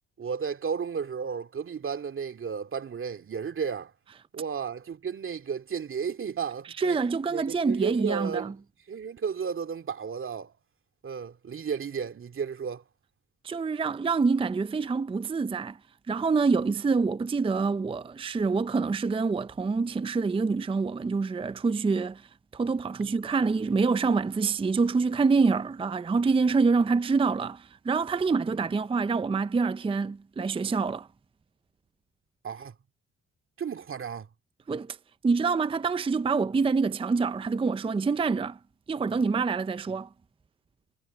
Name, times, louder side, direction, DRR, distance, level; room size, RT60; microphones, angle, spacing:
voice 1, 0.2-3.9 4.3-7.0 7.3-8.5 8.9-10.5 11.0-12.8 28.5-28.6 32.4-32.7 33.6-34.3, right 6 dB, 45° right, 2.3 m, -33 dB
voice 2, 6.8-8.5 13.4-15.8 16.1-31.1 34.7-35.0 35.2-38.6 38.9-40.1, right 4 dB, 20° right, 0.5 m, -26 dB
cardioid pair, 90°, 30 cm